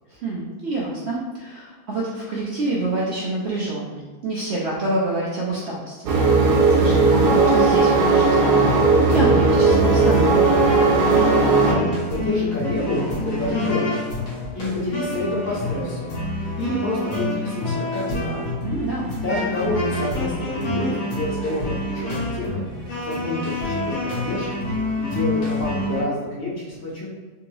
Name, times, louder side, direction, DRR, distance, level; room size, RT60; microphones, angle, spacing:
voice 1, 0.1-6.1 6.4-10.6 18.6-19.1, right 2 dB, 70° right, -5 dB, 0.6 m, -27 dB
sound 1, 6.1-11.7, right 3 dB, 90° right, 1.2 m, -17 dB
sound 2, 8.3-26.0, left 2 dB, 80° left, 1.7 m, -28 dB
voice 2, 11.6-14.1 14.5-16.1 16.6-18.4 19.2-22.6 23.0-24.7 25.0-27.1, left 1 dB, 55° left, -10 dB, 1.8 m, -28 dB
3.7 x 2.9 x 2.6 m, 1.4 s
omnidirectional pair, 1.7 m